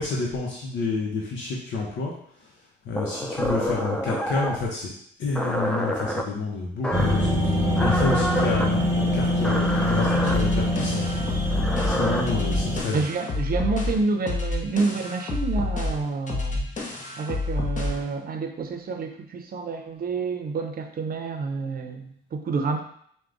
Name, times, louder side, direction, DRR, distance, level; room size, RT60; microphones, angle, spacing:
voice 1, 0.0-2.1 2.8-4.9 5.2-7.5 7.8-11.0 11.8-13.1, left 3 dB, 70° left, -3 dB, 0.8 m, -29 dB
sound 1, 2.9-4.6 5.3-6.2 6.8-7.3 7.7-8.7 9.4-10.4 11.5-12.2, equal, 5° left, 0.5 m, -27 dB
sound 2, 6.9-12.8, left 1 dB, 15° right, 1.0 m, -24 dB
sound 3, 10.3-18.1, left 2 dB, 40° left, 0.9 m, -29 dB
voice 2, 12.9-16.7 17.2-22.8, right 4 dB, 50° right, 5 dB, 0.6 m, -28 dB
4.6 x 2.2 x 3.8 m, 0.65 s
cardioid pair, 90°, 20 cm